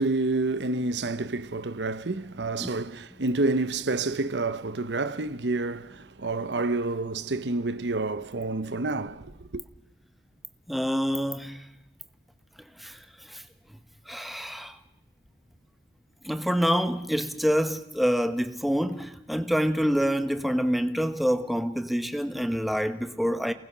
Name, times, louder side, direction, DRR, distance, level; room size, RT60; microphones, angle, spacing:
voice 1, 0.0-9.6, right 2 dB, 85° right, 1.0 m, -29 dB
voice 2, 10.7-11.6 12.8-13.0 13.3-13.4 14.1-14.8 16.2-23.5, equal, ahead, 1.2 m, -26 dB
29.5 x 19.5 x 6.1 m
head